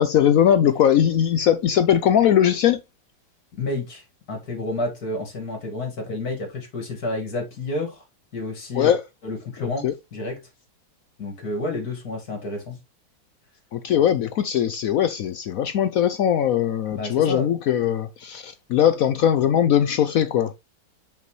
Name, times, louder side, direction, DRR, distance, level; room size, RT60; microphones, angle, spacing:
voice 1, 0.0-2.8 8.8-9.0 9.6-9.9 13.7-20.5, left 9 dB, 70° left, 0.8 m, -20 dB
voice 2, 3.5-8.0 8.3-9.0 9.2-9.9 10.1-10.4 11.2-12.8 16.9-17.5, left 2 dB, 55° left, 2.6 m, -30 dB
8.0 x 5.2 x 3.2 m
omnidirectional pair, 2.0 m